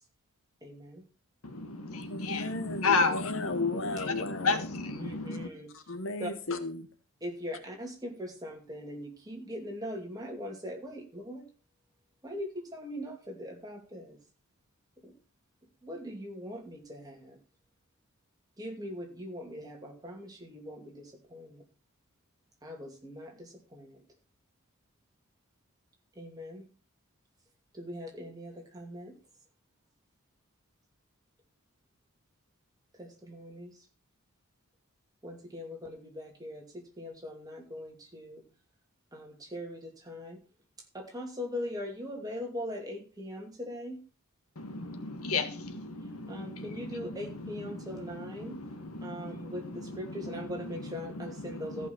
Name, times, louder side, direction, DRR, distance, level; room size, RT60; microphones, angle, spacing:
voice 1, 0.6-1.0 4.9-5.7 6.2-6.3 7.2-11.5 12.2-14.2 15.0-15.1 15.8-17.4 18.6-21.6 22.6-24.0 26.2-26.6 27.7-29.1 32.9-33.9 35.2-38.4 39.1-40.4 40.9-44.0 46.0-48.6 49.0-51.9, equal, 15° right, 2.6 m, -41 dB
voice 2, 1.4-5.5 44.5-51.9, left 3 dB, 80° left, 1.5 m, -34 dB
voice 3, 2.1-4.7 5.3-5.4 5.7-6.9, left 3 dB, 55° left, 1.1 m, -35 dB
14.5 x 5.6 x 6.0 m
head